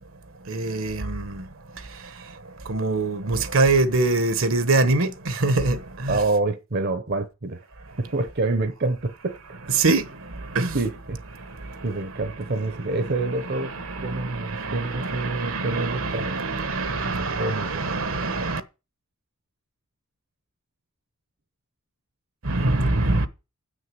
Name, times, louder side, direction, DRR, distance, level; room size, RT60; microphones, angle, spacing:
voice 1, 0.4-6.2 7.8-8.3 9.2-18.6 22.4-23.3, right 3 dB, 70° right, 1.1 m, -26 dB
voice 2, 6.1-7.7 8.0-9.6 10.7-11.2 11.8-13.7 14.0-16.4 17.0-18.0 22.6-23.3, right 2 dB, 50° right, 0.8 m, -27 dB
8.4 x 6.4 x 7.6 m
head